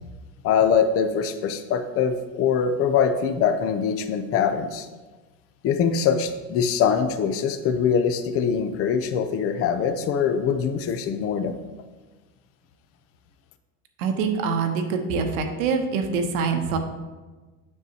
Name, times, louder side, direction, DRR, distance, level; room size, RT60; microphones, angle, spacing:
voice 1, 0.4-4.9 5.6-11.5, left 7 dB, 35° left, 9 dB, 0.5 m, -23 dB
voice 2, 14.0-16.8, right 5 dB, 75° right, 5 dB, 0.9 m, -25 dB
6.6 x 6.3 x 2.8 m, 1.2 s
supercardioid pair, 120°, 40 cm